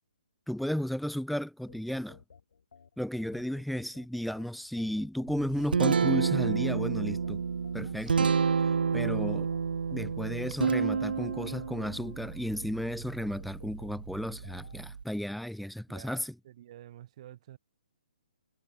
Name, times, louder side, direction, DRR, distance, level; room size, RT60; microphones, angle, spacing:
voice 1, 0.5-2.2 3.0-7.4 7.7-8.3 8.9-9.5 9.9-16.3, equal, ahead, 0.3 m, -34 dB
sound 1, 1.7-14.8, left 6 dB, 70° left, 5.9 m, -56 dB
Guitar, 5.3-15.0, right 6 dB, 75° right, 0.7 m, -30 dB
voice 2, 15.9-17.6, right 12 dB, 45° right, 3.3 m, -50 dB
hypercardioid pair, 150°, 5 cm